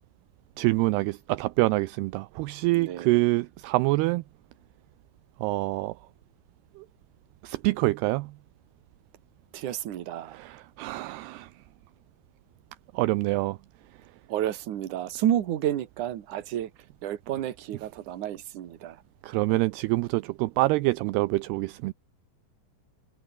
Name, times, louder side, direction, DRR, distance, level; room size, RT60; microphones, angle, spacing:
voice 1, 0.6-4.2 5.4-5.9 6.8-6.9 7.4-8.3 10.3-11.5 12.9-13.6 19.2-21.9, right 20 dB, 80° right, 2.5 m, -26 dB
voice 2, 2.7-3.2 9.5-10.4 14.3-16.7 17.0-19.0, right 11 dB, 55° right, 2.7 m, -30 dB
omnidirectional pair, 5.1 m